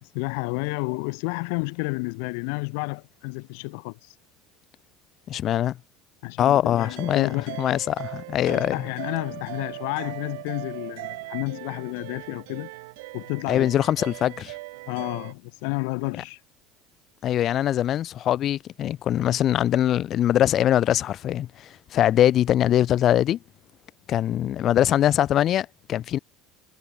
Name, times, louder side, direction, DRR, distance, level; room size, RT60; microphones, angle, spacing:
voice 1, 0.1-4.1 6.2-7.6 8.5-12.7 13.1-13.7 14.9-16.4, left 35 dB, 80° left, 1.5 m, -31 dB
voice 2, 5.3-5.8 6.4-7.3 7.6-8.9 13.5-14.5 17.2-23.4 24.1-26.2, left 11 dB, 40° left, 1.8 m, -22 dB
sound 1, 6.8-15.3, right 24 dB, 85° right, 6.3 m, -39 dB
cardioid pair, 140°, 0 cm